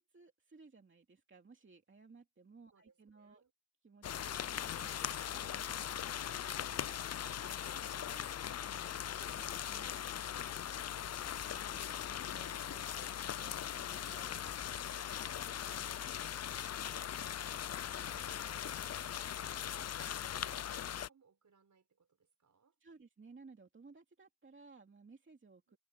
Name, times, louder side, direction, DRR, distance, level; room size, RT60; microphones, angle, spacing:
voice 1, 0.0-3.4 3.8-10.0 11.6-14.9 15.7-16.2 22.8-25.8, right 4 dB, 35° right, 2.5 m, -60 dB
voice 2, 2.7-3.5 6.2-6.6 7.9-8.7 10.6-11.3 16.2-22.8 25.7-25.8, right 5 dB, 55° right, 5.3 m, -67 dB
sound 1, 4.0-21.1, left 10 dB, 50° left, 0.4 m, -40 dB
sound 2, 9.2-9.9 11.0-12.5 14.1-15.1 17.5-18.9, left 2 dB, 15° left, 4.7 m, -60 dB
wide cardioid pair, 160°, 34 cm